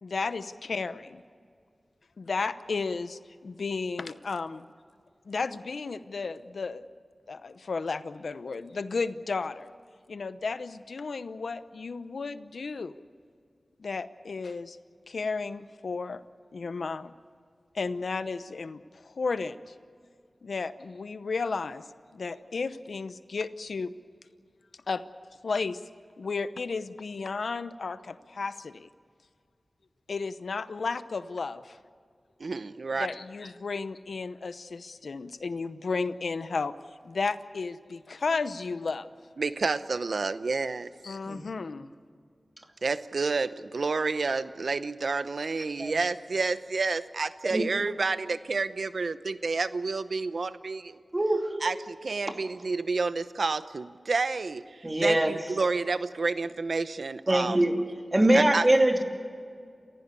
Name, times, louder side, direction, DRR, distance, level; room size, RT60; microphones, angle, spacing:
voice 1, 0.0-1.2 2.2-4.7 5.3-6.8 7.3-9.7 10.1-13.0 13.8-14.8 15.1-16.2 16.5-17.1 17.7-19.7 20.4-21.9 22.1-23.9 24.9-25.0 25.4-25.8 26.2-28.9 30.1-31.8 33.0-36.7 37.0-39.1 41.0-41.9, left 4 dB, 90° left, 13 dB, 0.8 m, -33 dB
voice 2, 32.4-33.1 39.4-40.9 42.8-51.0 51.6-57.6 58.3-58.7, right 4 dB, 80° right, 13 dB, 0.8 m, -29 dB
voice 3, 51.1-51.5 54.8-55.3 57.3-57.7 58.1-59.0, right 1 dB, 30° right, 4 dB, 2.6 m, -22 dB
28.5 x 15.5 x 8.4 m, 2.2 s
wide cardioid pair, 50°, 0 cm